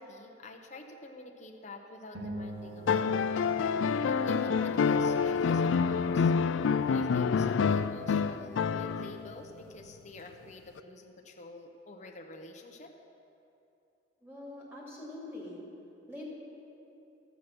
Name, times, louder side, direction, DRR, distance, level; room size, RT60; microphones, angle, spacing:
voice 1, 0.0-3.3 4.0-6.3 6.9-12.9, left 2 dB, 40° left, 2 dB, 0.9 m, -47 dB
sound 1, 2.1-4.8, right 1 dB, 75° right, 1.6 m, -44 dB
sound 2, 2.9-9.3 10.8-10.9, left 5 dB, 80° left, 0.4 m, -27 dB
voice 2, 14.2-15.6 16.1-16.2, left 1 dB, 10° right, -5 dB, 2.6 m, -44 dB
12.5 x 8.2 x 6.1 m, 2.9 s
head